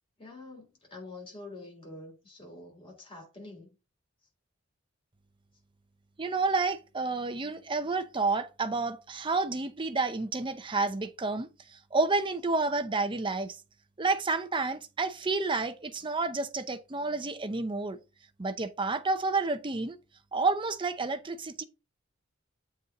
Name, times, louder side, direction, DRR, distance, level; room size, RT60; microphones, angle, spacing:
voice 1, 0.2-3.7, left 2 dB, 25° left, 3.5 m, -46 dB
voice 2, 6.2-11.5 11.9-13.6 14.0-18.0 18.4-20.0 20.3-21.6, right 3 dB, 25° right, 0.6 m, -30 dB
7.9 x 4.3 x 3.7 m
head